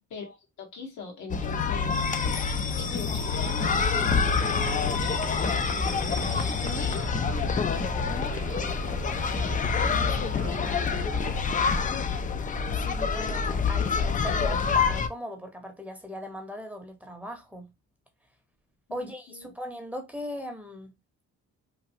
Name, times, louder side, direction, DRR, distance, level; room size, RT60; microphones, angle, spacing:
voice 1, 0.1-2.0 2.7-7.1 7.7-9.0 18.9-19.6, left 4 dB, 85° left, 1.2 m, -42 dB
sound 1, 1.3-15.1, left 5 dB, 25° left, 0.4 m, -27 dB
sound 2, 3.6-11.8, equal, 50° right, 0.8 m, -36 dB
voice 2, 10.1-11.5 12.7-17.7 18.9-20.9, equal, 5° right, 0.7 m, -39 dB
3.1 x 2.2 x 2.7 m
cardioid pair, 90°, 30 cm